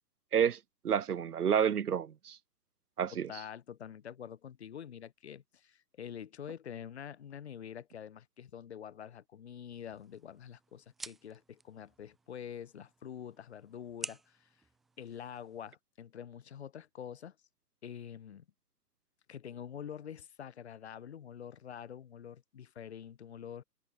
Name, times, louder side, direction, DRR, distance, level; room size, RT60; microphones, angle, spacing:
voice 1, 0.8-2.4 3.0-3.3, right 8 dB, 65° right, 1.5 m, -29 dB
voice 2, 3.1-14.5 15.0-17.3 17.8-18.4 19.3-23.6, left 9 dB, 40° left, 4.8 m, -46 dB
sound 1, 9.7-15.7, right 3 dB, ahead, 0.9 m, -51 dB
hypercardioid pair, 175°, 49 cm